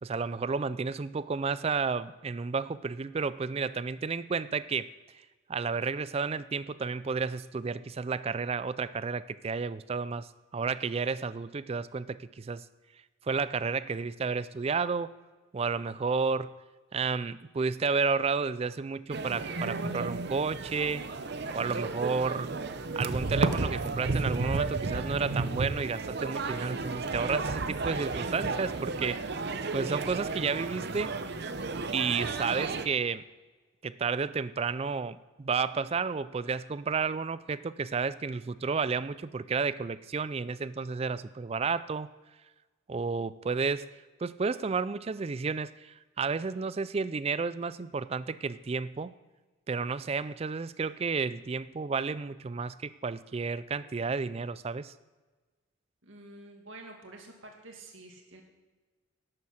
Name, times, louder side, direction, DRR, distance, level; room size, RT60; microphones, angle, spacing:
voice 1, 0.0-4.9 5.5-12.7 13.2-15.1 15.5-16.5 16.9-21.1 21.5-22.5 23.0-29.2 29.7-31.2 31.9-33.2 33.8-42.1 42.9-43.9 44.2-49.1 49.7-54.9, right 5 dB, 30° right, 16 dB, 0.3 m, -31 dB
sound 1, 19.1-32.9, right 3 dB, 55° right, 0.7 m, -33 dB
voice 2, 56.0-58.4, right 2 dB, 70° right, 2 dB, 2.2 m, -49 dB
11.5 x 7.7 x 6.4 m, 1.3 s
head